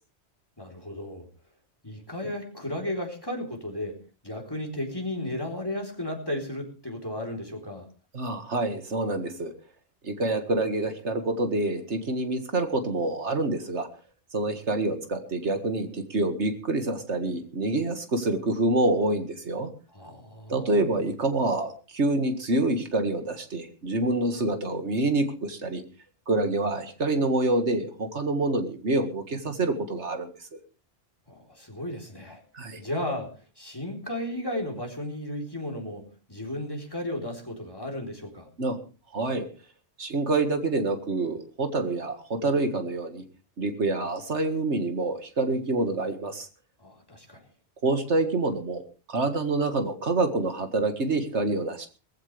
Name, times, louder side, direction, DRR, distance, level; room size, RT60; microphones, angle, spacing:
voice 1, 0.6-1.3 1.8-4.0 4.2-7.9 19.9-20.8 31.3-32.4 32.8-38.5 46.8-47.5, left 1 dB, 20° left, 1 dB, 3.9 m, -34 dB
voice 2, 8.1-9.5 10.0-13.9 14.3-19.7 20.5-25.8 26.3-30.6 32.5-32.8 38.6-38.8 39.1-39.4 40.0-43.2 43.6-46.5 47.8-48.8 49.1-51.9, right 2 dB, 85° right, 7 dB, 2.2 m, -27 dB
21.0 x 15.0 x 3.4 m, 0.35 s
omnidirectional pair, 1.2 m